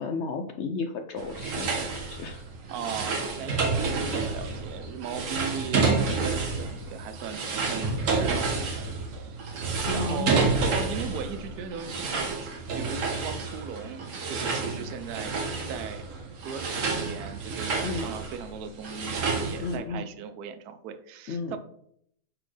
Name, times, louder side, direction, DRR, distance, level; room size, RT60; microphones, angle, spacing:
voice 1, 0.0-1.9 2.2-2.4 9.8-10.3 17.8-18.1 19.6-20.0 21.3-21.6, left 4 dB, 65° left, 5 dB, 0.7 m, -33 dB
sound 1, 1.2-19.8, right 4 dB, 55° right, 1.3 m, -29 dB
voice 2, 2.7-9.4 9.9-15.4 15.7-16.1 16.4-21.6, right 7 dB, 75° right, 10 dB, 1.1 m, -38 dB
sound 2, 7.8-12.3 12.6-12.7, right 2 dB, 40° right, 0.5 m, -40 dB
8.9 x 4.2 x 3.3 m, 0.69 s
omnidirectional pair, 1.7 m